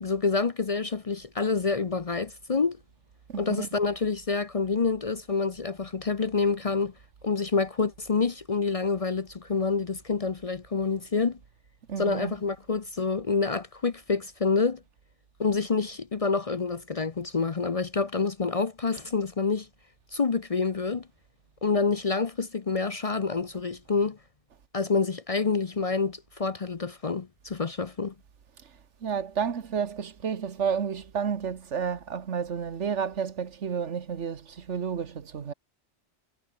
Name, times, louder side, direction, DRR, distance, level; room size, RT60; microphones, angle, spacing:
voice 1, 0.0-2.8 3.4-6.9 7.2-11.4 12.0-14.8 15.4-19.7 20.1-21.1 21.6-24.2 24.7-28.1, left 4 dB, 35° left, 0.7 m, -27 dB
voice 2, 3.3-3.7 11.9-12.4 29.0-35.5, right 7 dB, 85° right, 1.6 m, -31 dB
omnidirectional pair, 1.2 m